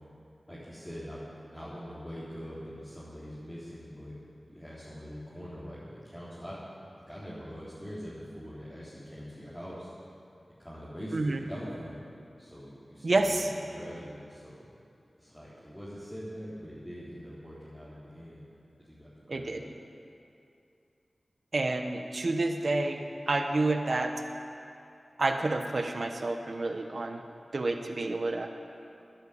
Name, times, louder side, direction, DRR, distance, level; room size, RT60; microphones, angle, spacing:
voice 1, 0.5-4.2 4.5-6.6 7.1-9.9 10.6-12.0 12.4-14.6 15.2-18.5 18.8-19.7, equal, 10° left, -11 dB, 3.7 m, -43 dB
voice 2, 13.0-13.5 19.3-19.6 21.5-24.1 25.2-27.2 27.5-28.5, right 2 dB, 60° right, 5 dB, 1.0 m, -29 dB
12.0 x 10.5 x 8.4 m, 2.6 s
cardioid pair, 45°, 0 cm